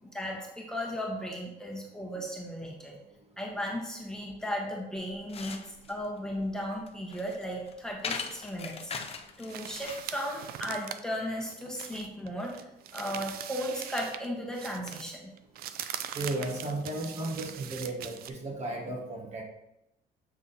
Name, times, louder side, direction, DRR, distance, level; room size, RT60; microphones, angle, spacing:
voice 1, 0.0-3.0 3.4-8.9 9.4-12.5 12.9-15.3, equal, 5° left, -2 dB, 1.5 m, -36 dB
sound 1, 5.0-10.1, left 5 dB, 35° left, 0.7 m, -40 dB
sound 2, 9.5-14.3 14.5-18.3, right 10 dB, 65° right, 0.5 m, -41 dB
voice 2, 16.1-19.4, right 2 dB, 40° right, 0 dB, 1.4 m, -34 dB
7.2 x 3.6 x 4.2 m, 0.86 s
cardioid pair, 110°, 17 cm